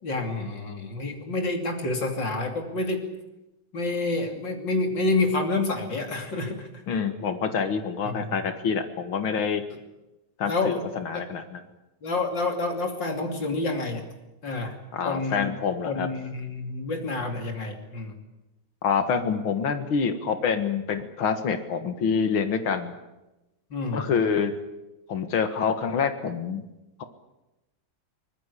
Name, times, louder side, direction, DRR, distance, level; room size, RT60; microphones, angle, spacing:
voice 1, 0.0-3.0 3.7-6.7 8.0-8.4 9.7-9.8 10.5-10.8 11.1-11.2 12.0-14.0 14.4-14.8 15.0-15.5 15.8-18.1 23.7-24.1, left 2 dB, 65° left, 3 dB, 3.5 m, -28 dB
voice 2, 6.9-9.6 10.4-11.6 14.9-16.1 18.8-22.9 23.9-24.5 25.1-26.6, left 6 dB, 90° left, 8 dB, 2.5 m, -26 dB
23.5 x 20.5 x 8.3 m, 0.98 s
omnidirectional pair, 2.2 m